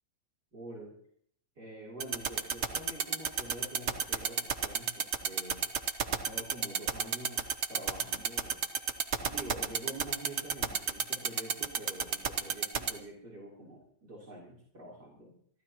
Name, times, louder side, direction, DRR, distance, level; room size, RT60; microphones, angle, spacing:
voice 1, 0.5-0.9 1.6-5.7 6.1-8.6 9.2-15.3, right 1 dB, 60° right, -5 dB, 4.1 m, -46 dB
sound 1, 2.0-12.9, right 6 dB, 45° right, 1.1 m, -29 dB
28.0 x 12.5 x 3.0 m, 0.63 s
omnidirectional pair, 1.9 m